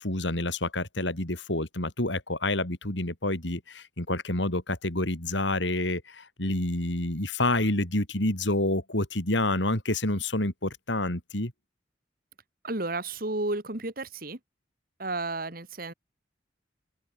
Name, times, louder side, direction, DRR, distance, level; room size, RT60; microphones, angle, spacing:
voice 1, 0.0-11.5, left 1 dB, 75° left, 4.7 m, -28 dB
voice 2, 12.6-14.4 15.0-15.9, right 2 dB, 50° right, 2.1 m, -32 dB
open air
head